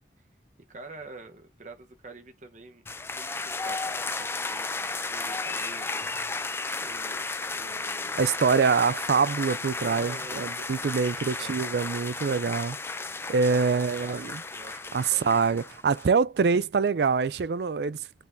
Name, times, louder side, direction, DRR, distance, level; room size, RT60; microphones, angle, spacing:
voice 1, 0.7-2.8 3.1-6.1 6.8-8.2 9.7-10.5 10.9-11.6 13.5-15.3, right 3 dB, 45° right, 1.1 m, -46 dB
sound 1, 2.9-16.1, left 3 dB, 15° left, 0.4 m, -34 dB
voice 2, 8.2-14.3 14.9-18.1, right 5 dB, 65° right, 0.4 m, -25 dB
10.5 x 4.1 x 2.7 m
head